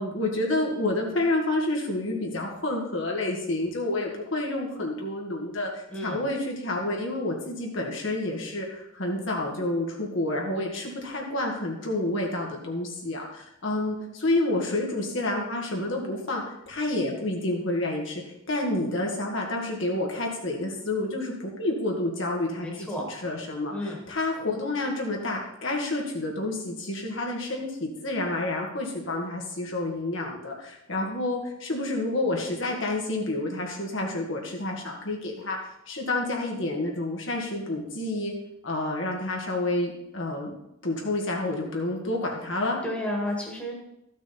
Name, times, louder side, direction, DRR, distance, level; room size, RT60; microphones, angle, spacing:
voice 1, 0.0-18.2 18.5-38.3 38.6-40.5 40.8-42.8, left 2 dB, 65° left, 0 dB, 1.8 m, -29 dB
voice 2, 5.9-6.2 22.6-23.1 23.7-24.0 42.8-43.7, left 1 dB, 5° left, -2 dB, 1.8 m, -32 dB
13.5 x 6.2 x 4.3 m, 0.83 s
head